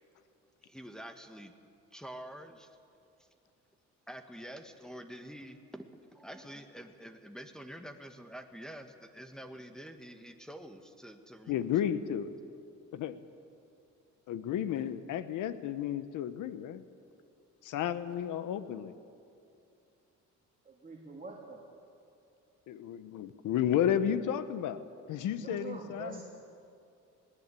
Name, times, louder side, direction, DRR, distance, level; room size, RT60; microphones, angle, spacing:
voice 1, 0.6-1.5 1.9-2.8 3.2-3.3 4.1-11.7, equal, ahead, 5 dB, 1.6 m, -47 dB
voice 2, 11.5-12.3 12.9-13.2 14.3-16.8 17.6-18.9 22.7-24.8 25.1-26.2, left 10 dB, 85° left, 13 dB, 1.1 m, -32 dB
voice 3, 20.6-21.6 25.4-26.2, right 3 dB, 25° right, -1 dB, 3.1 m, -44 dB
20.5 x 18.5 x 8.4 m, 2.5 s
cardioid pair, 90°, 30 cm